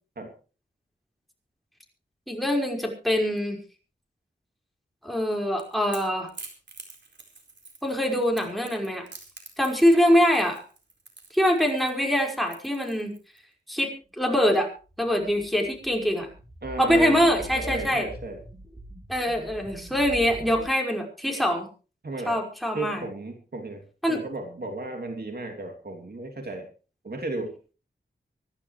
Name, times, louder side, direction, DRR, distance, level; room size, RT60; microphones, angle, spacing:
voice 1, 2.3-3.6 5.0-6.3 7.8-9.1 9.6-10.6 11.3-13.1 13.7-14.7 15.0-16.3 16.8-18.1 19.1-21.7 22.3-23.0 24.0-24.2, equal, ahead, 2 dB, 5.4 m, -24 dB
Crackle / Crack, 5.2-13.4, right 3 dB, 75° right, 4.4 m, -46 dB
sound 1, 14.9-20.7, right 1 dB, 20° right, 3.6 m, -43 dB
voice 2, 16.6-17.2 17.5-18.4 22.0-22.4 22.7-26.7 27.0-27.5, right 2 dB, 60° right, 4 dB, 2.9 m, -34 dB
25.0 x 11.5 x 3.3 m, 0.35 s
wide cardioid pair, 65°, 19 cm